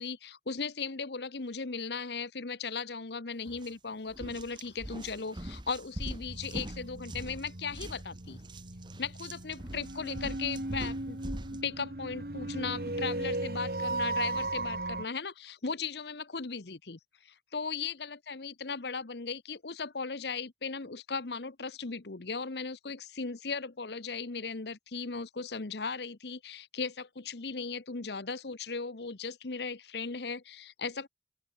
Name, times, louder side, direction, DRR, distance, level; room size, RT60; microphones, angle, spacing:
voice 1, 0.0-8.4 9.0-11.2 11.6-31.1, left 5 dB, 75° left, 1.0 m, -37 dB
sound 1, 3.5-3.7 4.1-11.6, right 1 dB, 25° right, 1.7 m, -43 dB
sound 2, 6.3-15.0, right 2 dB, 55° right, 1.9 m, -37 dB
open air
head